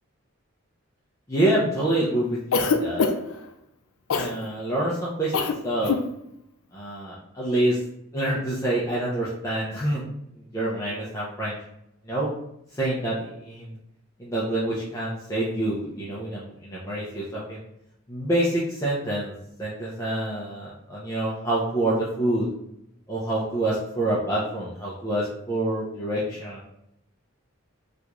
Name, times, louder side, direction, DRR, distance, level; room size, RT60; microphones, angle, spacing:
voice 1, 1.3-3.0 4.1-5.4 5.6-5.9 6.7-7.8 8.1-10.1 10.4-11.6 12.0-12.3 12.7-13.7 14.2-17.6 18.1-19.3 19.6-22.5 23.1-26.6, right 1 dB, 15° left, -7 dB, 0.5 m, -27 dB
Cough, 2.5-3.4 4.1-4.4 5.3-5.6 5.8-6.1, left 4 dB, 80° left, 0.4 m, -23 dB
2.9 x 2.5 x 3.4 m, 0.80 s
head